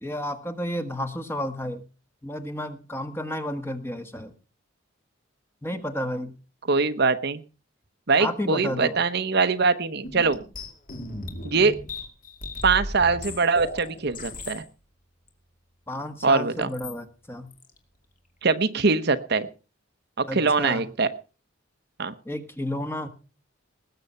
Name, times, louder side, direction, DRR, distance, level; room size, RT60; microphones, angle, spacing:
voice 1, 0.0-1.8 2.2-4.3 5.6-6.3 8.2-9.0 15.9-17.5 20.3-20.8 22.2-23.1, left 1 dB, 10° left, 8 dB, 1.5 m, -31 dB
voice 2, 6.7-7.4 8.1-10.4 11.4-11.8 12.6-14.6 16.2-16.7 18.4-19.5 20.2-21.1 22.0-22.1, right 4 dB, 55° right, 10 dB, 0.9 m, -22 dB
sound 1, 10.0-14.6 15.3-15.4 16.6-17.0 17.5-17.8, left 2 dB, 45° left, 2.5 m, -36 dB
19.5 x 7.7 x 5.6 m, 0.35 s
head